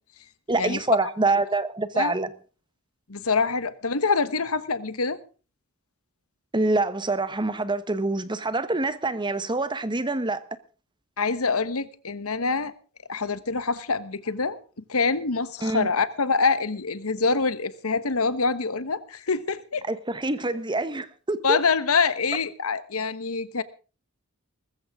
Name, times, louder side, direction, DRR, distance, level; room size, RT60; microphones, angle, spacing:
voice 1, 0.5-2.3 6.5-10.4 15.6-15.9 19.9-21.6, right 2 dB, 20° right, 1.1 m, -26 dB
voice 2, 3.1-5.2 11.2-12.7 13.1-14.6 14.9-19.8 21.4-23.6, left 4 dB, 75° left, 1.3 m, -25 dB
21.0 x 14.5 x 3.7 m
head